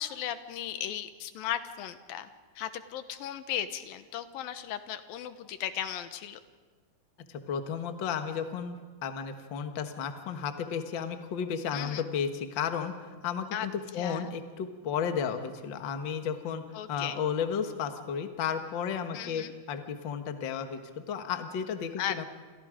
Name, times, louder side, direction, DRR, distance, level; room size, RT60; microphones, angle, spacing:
voice 1, 0.0-2.3 2.6-6.4 11.7-12.1 13.5-13.7 13.9-14.3 16.7-17.2 19.1-19.5 22.0-22.3, left 10 dB, 90° left, 10 dB, 2.8 m, -36 dB
voice 2, 7.3-16.6 16.9-22.2, left 7 dB, 50° left, 7 dB, 1.6 m, -33 dB
29.0 x 27.5 x 5.1 m, 1.4 s
omnidirectional pair, 4.0 m